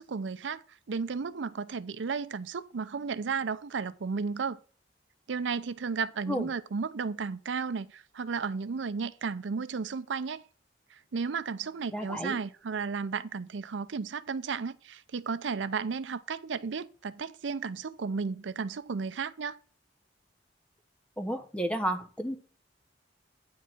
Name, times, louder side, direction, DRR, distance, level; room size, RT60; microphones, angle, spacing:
voice 1, 0.0-4.6 5.3-10.4 10.9-19.6, right 5 dB, 80° right, 0.5 m, -34 dB
voice 2, 11.9-12.4 21.2-22.4, equal, 5° left, 0.9 m, -32 dB
9.2 x 4.8 x 5.6 m
head